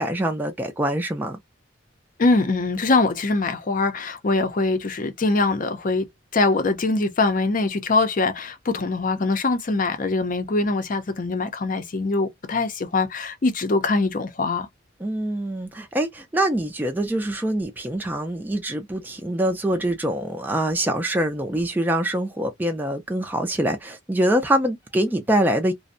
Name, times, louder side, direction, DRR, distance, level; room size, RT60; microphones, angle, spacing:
voice 1, 0.0-1.4 15.0-25.7, right 1 dB, 10° right, 0.3 m, -24 dB
voice 2, 2.2-6.1 6.3-14.7, left 3 dB, 45° left, 0.5 m, -23 dB
2.5 x 2.0 x 2.5 m
head